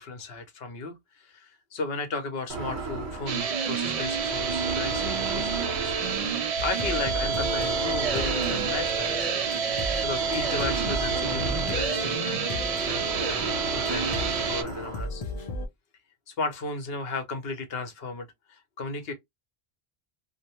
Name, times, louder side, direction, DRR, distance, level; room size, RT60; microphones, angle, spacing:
voice 1, 0.0-5.9 6.6-9.3 10.0-15.2 16.3-19.1, left 3 dB, 70° left, 1.0 m, -35 dB
sound 1, 2.5-15.0, right 3 dB, 85° right, 1.1 m, -35 dB
sound 2, 3.3-14.6, right 6 dB, 55° right, 0.4 m, -28 dB
sound 3, 6.6-15.7, left 3 dB, 45° left, 0.5 m, -36 dB
2.6 x 2.1 x 2.8 m
omnidirectional pair, 1.1 m